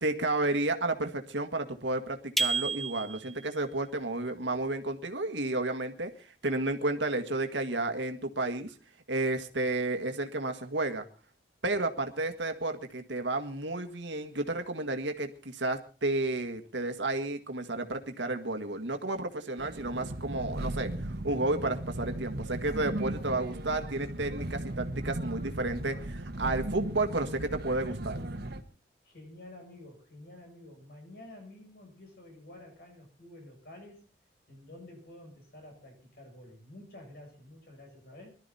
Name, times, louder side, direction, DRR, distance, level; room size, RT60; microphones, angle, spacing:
voice 1, 0.0-8.7 9.1-11.0 11.6-28.2, right 2 dB, 75° right, 6 dB, 1.8 m, -32 dB
sound 1, 2.4-3.5, right 3 dB, ahead, 0.8 m, -30 dB
sound 2, 19.6-28.6, right 1 dB, 60° right, 1.5 m, -37 dB
voice 2, 29.0-34.0 34.5-38.4, left 1 dB, 60° left, 3 dB, 7.9 m, -50 dB
22.0 x 12.5 x 4.2 m, 0.36 s
head